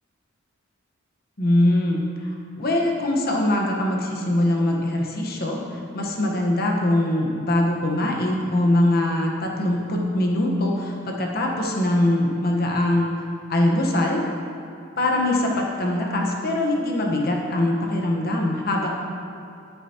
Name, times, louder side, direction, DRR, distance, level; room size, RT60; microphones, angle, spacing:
voice 1, 1.4-2.3 2.6-13.1 13.5-14.2 15.0-18.9, left 1 dB, 50° left, 0 dB, 1.1 m, -22 dB
13.0 x 7.0 x 2.9 m, 2.6 s
head